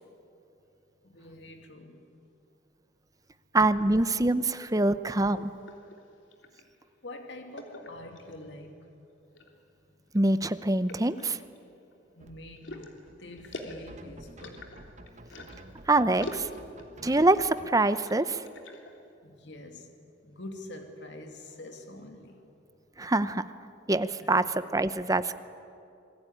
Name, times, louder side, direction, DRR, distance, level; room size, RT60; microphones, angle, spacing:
voice 1, 1.0-2.0 7.0-8.9 12.1-14.7 15.6-15.8 19.2-19.9 20.2-22.4 24.2-24.5, left 1 dB, 70° left, 4 dB, 2.6 m, -46 dB
voice 2, 3.5-5.5 10.1-11.4 15.9-16.5 17.0-18.4 23.0-23.4 23.9-24.4 24.7-25.4, right 2 dB, 20° right, 13 dB, 0.7 m, -25 dB
sound 1, 5.3-6.7 7.6-8.5 9.1-9.6 10.1-10.2 10.9-12.0 12.6-15.7 16.2-17.4 17.7-19.0, left 1 dB, 85° left, 3.2 m, -44 dB
sound 2, 12.2-17.7, right 1 dB, 40° right, 1.4 m, -50 dB
27.5 x 21.0 x 9.9 m, 2.7 s
head